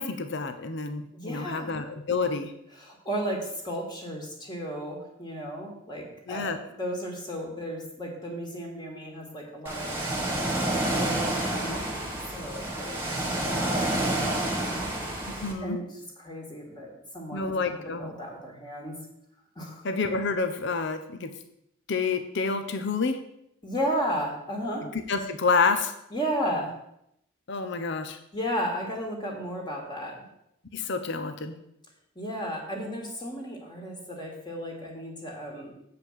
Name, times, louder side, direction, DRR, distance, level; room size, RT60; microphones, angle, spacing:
voice 1, 0.0-2.5 6.3-6.6 15.3-15.8 17.3-18.1 19.8-21.3 21.9-23.2 25.1-25.9 27.5-28.2 30.7-31.5, left 4 dB, 60° left, 8 dB, 0.8 m, -28 dB
voice 2, 1.2-1.8 2.8-10.5 11.0-12.0 12.3-14.8 15.6-15.9 16.2-17.5 18.0-19.0 19.6-19.9 23.6-24.9 26.1-26.7 28.3-30.2 32.2-35.7, equal, 20° left, -1 dB, 2.0 m, -34 dB
Ocean, 9.7-15.5, right 1 dB, 10° right, 1.6 m, -29 dB
7.8 x 5.2 x 7.3 m, 0.77 s
head